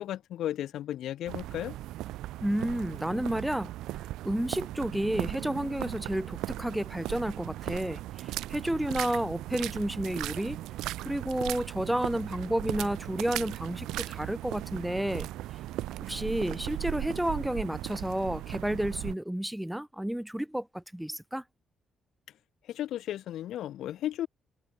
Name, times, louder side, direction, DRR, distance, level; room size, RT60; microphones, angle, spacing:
voice 1, 0.0-1.8 22.7-24.3, left 12 dB, 80° left, 1.0 m, -34 dB
sound 1, 1.3-19.1, right 15 dB, 90° right, 0.5 m, -37 dB
voice 2, 2.4-3.7 4.2-10.6 11.0-15.3 16.0-21.4, right 1 dB, 5° right, 0.6 m, -31 dB
cardioid pair, 90°, 0 cm